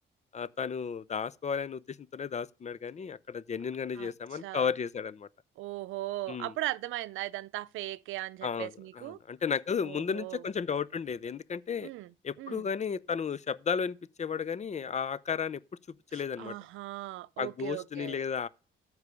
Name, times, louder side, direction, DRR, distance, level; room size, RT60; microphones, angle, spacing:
voice 1, 0.3-5.3 6.3-6.5 8.4-11.9 12.2-15.6 16.1-16.6 17.4-18.5, left 6 dB, 35° left, 0.6 m, -33 dB
voice 2, 4.0-4.7 5.6-9.2 9.8-10.4 11.8-12.7 16.1-18.2, right 16 dB, 85° right, 0.5 m, -38 dB
13.5 x 4.8 x 6.9 m
cardioid pair, 90°, 20 cm